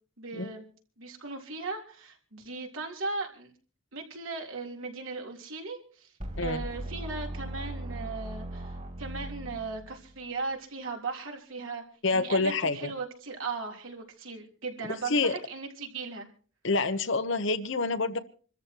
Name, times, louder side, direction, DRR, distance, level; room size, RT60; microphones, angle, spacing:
voice 1, 0.2-0.6 1.0-3.5 3.9-6.1 6.4-11.8 12.1-16.3, right 4 dB, 70° right, 1 dB, 3.6 m, -37 dB
sound 1, 6.2-10.2, right 1 dB, 35° right, 2.8 m, -38 dB
voice 2, 12.0-12.9 15.1-15.3 16.6-18.2, left 3 dB, 60° left, 11 dB, 1.1 m, -27 dB
27.0 x 14.0 x 3.0 m, 0.41 s
head